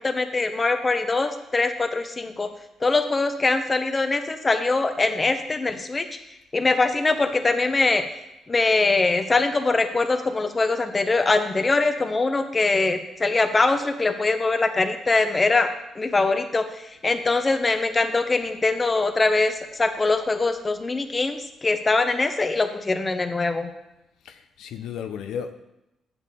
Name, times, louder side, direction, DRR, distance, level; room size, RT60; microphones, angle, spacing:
voice 1, 0.0-2.5 2.8-6.1 6.5-8.0 8.5-15.7 16.0-23.7, left 3 dB, 25° left, 8 dB, 0.8 m, -22 dB
voice 2, 24.2-25.5, left 8 dB, 80° left, 8 dB, 0.5 m, -34 dB
7.3 x 7.0 x 4.1 m, 0.90 s
cardioid pair, 90°, 0 cm